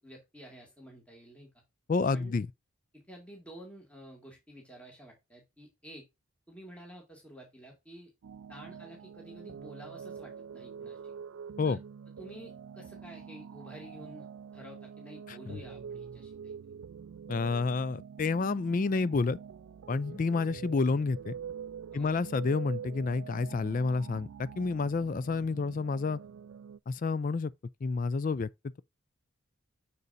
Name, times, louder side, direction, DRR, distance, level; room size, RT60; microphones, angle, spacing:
voice 1, 0.0-1.5 2.1-2.3 2.9-6.1 6.5-8.1 8.5-11.0 11.6-11.8 12.2-14.3 14.5-16.5 21.9-22.3, right 1 dB, 5° left, 2.2 m, -50 dB
voice 2, 1.9-2.5 11.6-11.8 15.3-15.6 17.3-19.4 19.9-21.4 21.9-26.2 26.9-27.5 27.8-28.8, left 4 dB, 40° left, 0.3 m, -29 dB
sound 1, 8.2-26.8, right 7 dB, 65° right, 0.3 m, -45 dB
6.8 x 6.7 x 2.6 m
head